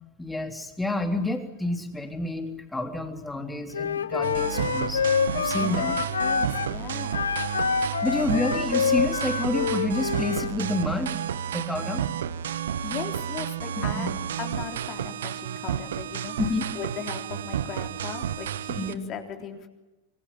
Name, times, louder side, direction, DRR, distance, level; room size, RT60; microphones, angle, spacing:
voice 1, 0.2-5.1 5.3-5.9 8.0-11.2 11.5-12.0 14.0-14.1 16.4-16.6 18.8-19.0, left 2 dB, 5° left, 6 dB, 3.5 m, -29 dB
Wind instrument woodwind instrument, 3.7-6.7 7.1-10.5, left 6 dB, 70° left, 1.4 m, -27 dB
sound 1, 4.2-18.9, right 9 dB, 60° right, 1.3 m, -31 dB
voice 2, 5.5-7.3 12.8-14.1 14.4-16.4 16.7-19.7, left 8 dB, 35° left, 5 dB, 3.8 m, -38 dB
26.0 x 24.0 x 7.7 m, 1.1 s
figure-of-eight pair, 90°, 0 cm